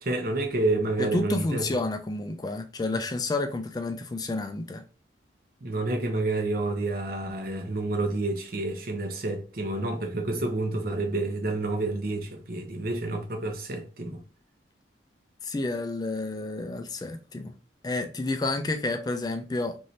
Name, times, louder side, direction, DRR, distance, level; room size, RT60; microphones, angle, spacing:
voice 1, 0.0-1.6 5.6-14.2, right 2 dB, 50° right, 0.7 m, -29 dB
voice 2, 1.0-4.8 15.4-17.5 17.8-19.8, left 2 dB, 20° left, 0.3 m, -30 dB
3.1 x 2.6 x 2.7 m
head